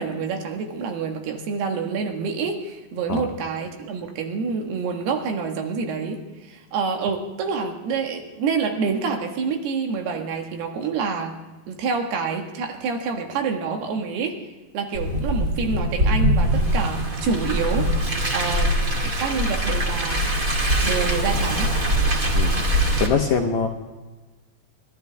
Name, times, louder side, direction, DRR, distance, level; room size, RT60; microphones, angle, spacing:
voice 1, 0.0-11.4 11.7-14.4 14.7-17.9 18.3-18.8 19.2-20.2 20.8-21.7, right 5 dB, 85° right, 3 dB, 3.7 m, -27 dB
Car, 14.9-23.1, equal, 30° right, 1.9 m, -22 dB
voice 2, 23.0-23.7, left 6 dB, 70° left, 3 dB, 1.8 m, -22 dB
30.0 x 12.5 x 3.5 m, 1.2 s
omnidirectional pair, 4.5 m